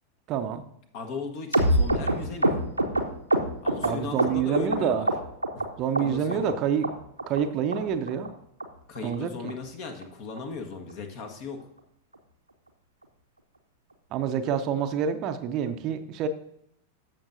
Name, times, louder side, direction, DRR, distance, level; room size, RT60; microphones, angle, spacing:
voice 1, 0.3-0.6 3.8-5.1 5.8-7.0 7.3-8.3 9.0-9.5 14.1-16.3, right 8 dB, 40° right, 9 dB, 0.6 m, -27 dB
voice 2, 0.9-2.6 3.6-5.1 5.5-5.6 6.0-6.5 8.9-11.6, left 4 dB, 45° left, 6 dB, 1.4 m, -37 dB
sound 1, 1.5-4.8 5.1-5.7 6.0-6.5 6.8-6.9 7.2-7.4 7.7-7.8 8.1-8.3 8.6-8.7 9.0-9.2 9.5-9.6 9.8-10.0 10.4-10.5 10.7-10.9 11.3-11.4, right 1 dB, 85° right, 0.8 m, -25 dB
14.0 x 6.1 x 2.6 m, 0.73 s
figure-of-eight pair, 90°, 0 cm